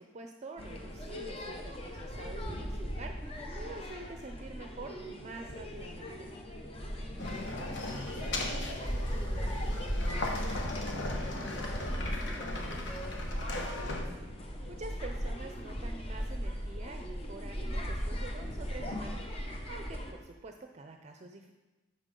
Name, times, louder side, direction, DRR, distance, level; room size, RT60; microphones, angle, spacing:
voice 1, 0.0-6.3 14.7-21.5, right 3 dB, 35° right, 4 dB, 0.5 m, -47 dB
sound 1, 0.6-20.1, equal, 30° left, 1.0 m, -38 dB
voice 2, 7.0-10.1 10.8-14.0, equal, 5° left, -6 dB, 3.2 m, -49 dB
sound 2, 7.2-14.1, left 2 dB, 70° left, 1.4 m, -38 dB
11.5 x 6.8 x 3.8 m, 1.1 s
head